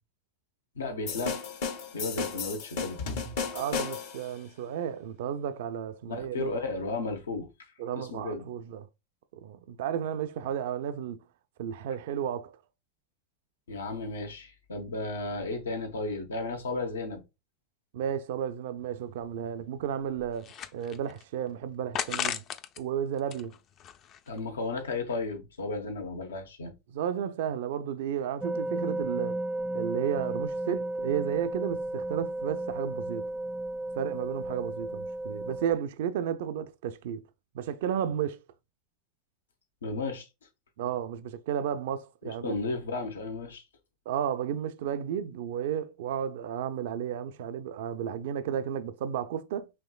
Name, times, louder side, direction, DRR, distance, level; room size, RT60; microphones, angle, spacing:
voice 1, 0.7-1.4 1.9-3.0 6.1-7.5 7.9-8.4 13.7-17.2 24.3-26.7 39.8-40.3 42.2-43.6, left 3 dB, 85° left, 0.9 m, -34 dB
sound 1, 1.1-4.3, left 5 dB, 70° left, 1.2 m, -34 dB
voice 2, 3.5-6.5 7.8-8.9 9.4-11.2 11.6-12.6 17.9-22.4 22.8-23.5 26.9-29.4 29.7-33.3 34.0-37.2 37.5-38.4 40.8-42.5 44.1-49.7, right 9 dB, 70° right, 0.4 m, -33 dB
sound 2, 18.8-18.9 19.2-19.3 19.9-21.2 21.9-22.8 23.2-24.4, left 9 dB, 40° left, 0.5 m, -36 dB
sound 3, 28.4-35.8, right 2 dB, 10° right, 0.5 m, -33 dB
5.7 x 3.1 x 2.3 m
hypercardioid pair, 95°, 0 cm